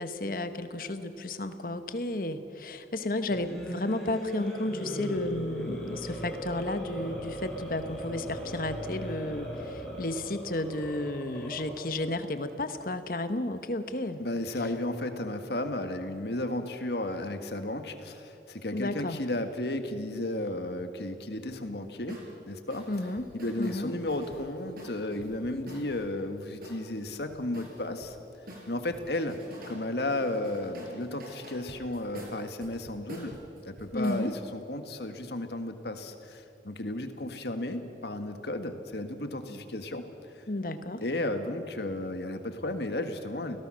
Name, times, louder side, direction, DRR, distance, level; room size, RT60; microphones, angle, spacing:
voice 1, 0.0-14.2 18.7-19.2 22.9-23.3 23.6-23.9 33.9-34.3 39.5-39.6 40.5-41.0, left 2 dB, 50° left, 9 dB, 1.2 m, -33 dB
sound 1, 3.2-12.0, equal, 5° left, 5.0 m, -38 dB
voice 2, 14.2-22.2 22.5-22.9 23.3-28.2 28.7-29.4 29.7-33.4 33.6-40.0 40.4-40.5 41.0-43.6, left 1 dB, 70° left, 7 dB, 1.7 m, -33 dB
sound 2, 22.1-22.3 22.7-26.0 26.6-28.1 28.5-29.8 30.1-34.2, equal, 55° right, 4.9 m, -47 dB
29.5 x 17.5 x 6.4 m, 3.0 s
head